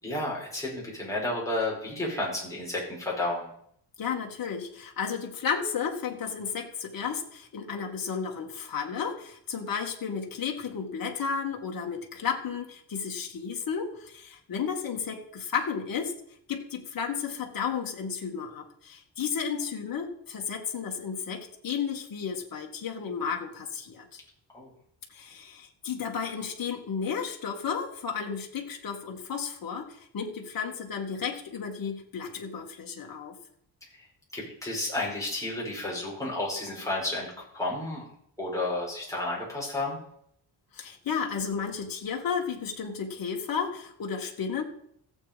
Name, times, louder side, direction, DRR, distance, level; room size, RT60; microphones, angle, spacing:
voice 1, 0.0-3.5 24.5-24.7 33.9-34.1 34.3-38.1 38.4-40.0, left 2 dB, 5° left, -4 dB, 5.2 m, -32 dB
voice 2, 4.0-16.1 16.5-24.1 25.1-33.4 40.7-44.6, left 6 dB, 50° left, 1 dB, 2.2 m, -33 dB
15.0 x 8.1 x 5.3 m, 0.68 s
wide cardioid pair, 170°, 44 cm